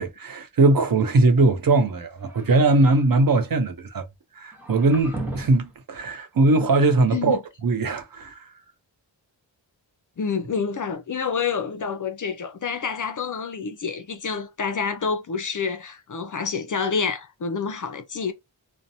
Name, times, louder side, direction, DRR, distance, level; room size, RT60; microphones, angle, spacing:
voice 1, 0.0-4.0 4.4-8.5, right 2 dB, 45° right, 0.6 m, -20 dB
sound 1, 2.2-3.1 4.5-5.7, right 1 dB, 5° right, 0.8 m, -36 dB
voice 2, 10.2-18.3, left 5 dB, 40° left, 0.5 m, -28 dB
2.7 x 2.1 x 2.6 m
cardioid pair, 65°, 47 cm